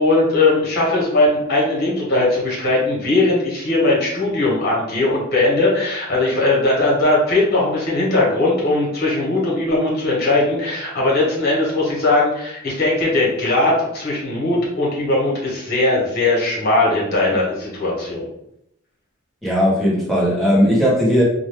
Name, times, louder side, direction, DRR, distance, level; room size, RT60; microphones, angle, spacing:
voice 1, 0.0-18.3, left 2 dB, 50° left, -4 dB, 1.1 m, -19 dB
voice 2, 19.4-21.2, equal, ahead, -7 dB, 1.0 m, -17 dB
2.6 x 2.3 x 3.4 m, 0.79 s
head